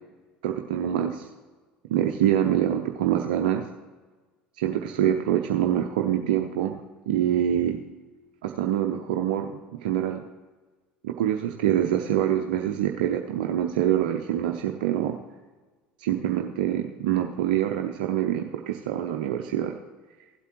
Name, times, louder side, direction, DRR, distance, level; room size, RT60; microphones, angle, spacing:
voice 1, 0.4-1.3 1.9-3.6 4.6-6.7 7.1-7.8 8.4-9.5 9.8-10.2 11.0-15.2 16.0-19.7, right 11 dB, 75° right, 3 dB, 0.6 m, -25 dB
15.5 x 8.2 x 3.0 m, 1.3 s
hypercardioid pair, 70°, 5 cm